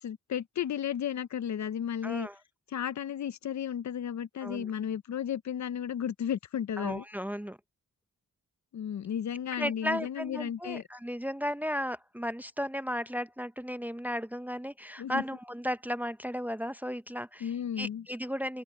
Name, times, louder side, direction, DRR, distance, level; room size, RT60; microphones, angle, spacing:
voice 1, 0.0-2.3 2.7-7.0 8.7-10.8 15.0-15.2 17.4-18.1, left 9 dB, 60° left, 0.7 m, -34 dB
voice 2, 2.0-2.4 4.4-4.7 6.8-7.6 9.6-17.5 17.8-18.6, equal, 5° right, 0.6 m, -35 dB
cardioid pair, 95°, 32 cm